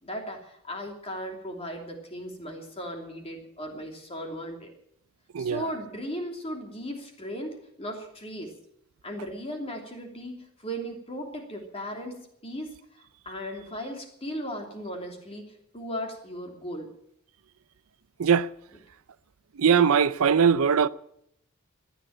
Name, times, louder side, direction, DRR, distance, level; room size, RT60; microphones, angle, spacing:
voice 1, 0.0-4.7 5.4-8.5 9.0-16.9, equal, 30° left, 3.0 m, -37 dB
voice 2, 5.3-5.7 18.2-18.5 19.6-20.9, right 7 dB, 80° right, 0.5 m, -21 dB
15.0 x 10.0 x 8.8 m
head